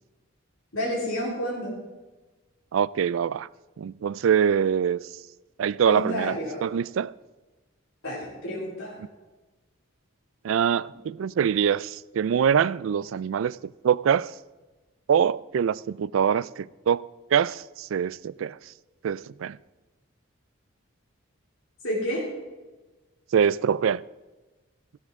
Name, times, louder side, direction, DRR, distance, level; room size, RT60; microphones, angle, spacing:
voice 1, 0.7-1.7 5.9-6.6 8.0-8.9 21.8-22.2, equal, 85° left, 3.7 m, -30 dB
voice 2, 2.7-3.5 3.8-5.0 5.6-7.1 10.4-13.6 13.8-14.3 15.1-17.1 17.3-18.6 19.0-19.6 23.3-24.0, right 7 dB, 75° right, 0.3 m, -24 dB
15.0 x 13.0 x 3.6 m
head